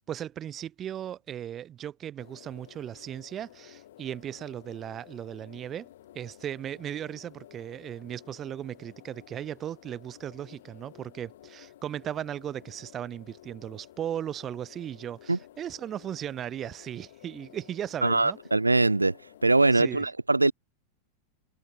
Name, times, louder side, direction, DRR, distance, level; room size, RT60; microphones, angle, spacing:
voice 1, 0.1-5.9 6.1-18.4 19.7-20.1, right 10 dB, 30° right, 1.9 m, -37 dB
sound 1, 2.2-19.6, left 13 dB, 55° left, 6.8 m, -53 dB
voice 2, 18.0-19.2 19.4-20.5, right 2 dB, 80° right, 0.4 m, -22 dB
figure-of-eight pair, 90°, 0 cm